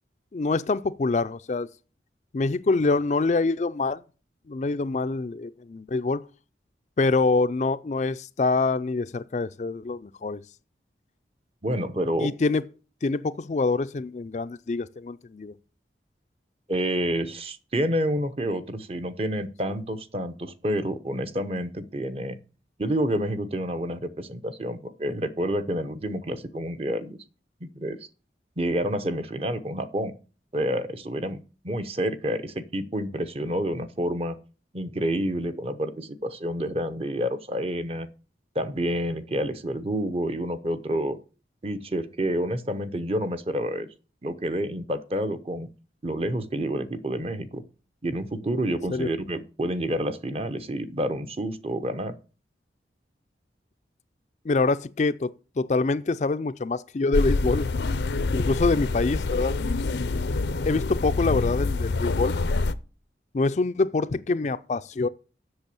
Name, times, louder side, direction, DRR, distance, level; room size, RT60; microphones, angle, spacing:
voice 1, 0.3-1.7 2.3-4.0 4.5-6.2 7.0-10.4 12.2-12.6 13.0-15.5 48.9-49.1 54.5-57.7 58.3-59.5 60.7-62.3 63.3-65.1, left 3 dB, 40° left, 0.4 m, -25 dB
voice 2, 11.6-12.3 16.7-22.4 22.8-27.2 27.6-28.0 28.6-30.2 30.5-31.4 31.6-34.4 34.7-38.1 38.5-41.2 41.6-43.9 44.2-45.7 46.0-47.6 48.0-52.2, equal, 35° right, 0.8 m, -28 dB
sound 1, 57.1-62.7, left 3 dB, 80° left, 0.6 m, -26 dB
8.0 x 6.8 x 7.0 m
head